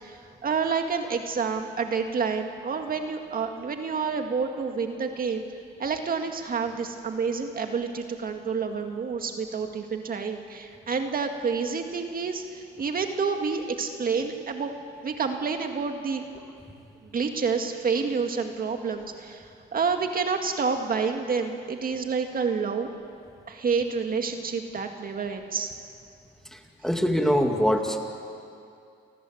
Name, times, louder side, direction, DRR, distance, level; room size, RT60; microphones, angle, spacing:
voice 1, 0.0-5.4 5.8-14.7 15.0-16.2 17.0-22.9 23.5-25.7, right 5 dB, 45° right, 5 dB, 2.0 m, -29 dB
voice 2, 26.8-28.0, equal, ahead, 3 dB, 2.6 m, -23 dB
29.5 x 19.0 x 7.9 m, 2.5 s
cardioid pair, 90°, 20 cm